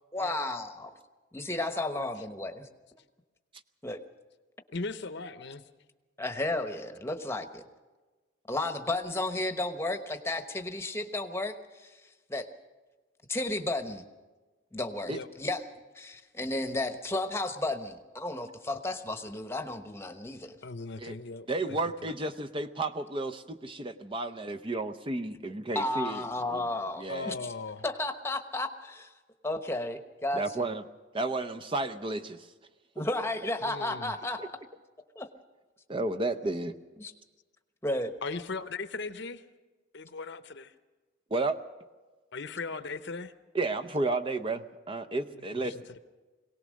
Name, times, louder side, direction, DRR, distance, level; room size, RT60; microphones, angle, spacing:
voice 1, 0.1-1.0 1.3-2.7 3.8-4.0 6.2-7.6 8.5-12.0 12.3-12.5 13.3-14.0 14.7-15.6 15.9-20.6 25.7-27.5 27.8-29.1 29.4-30.4 32.9-34.4 35.1-35.3 37.0-37.1 37.8-38.2, left 2 dB, 10° left, 7 dB, 1.0 m, -33 dB
voice 2, 4.7-5.6 15.1-15.3 20.6-21.5 22.0-22.1 27.1-27.8 33.6-34.1 38.2-39.4 39.9-40.7 42.3-43.3 45.3-46.0, left 3 dB, 55° left, 11 dB, 0.8 m, -38 dB
voice 3, 21.5-26.7 27.0-27.3 30.3-30.8 31.1-32.5 33.0-33.1 34.4-34.5 35.9-36.7 41.3-41.6 43.5-45.8, right 2 dB, 25° right, 7 dB, 0.6 m, -32 dB
22.5 x 18.0 x 6.4 m, 1.3 s
head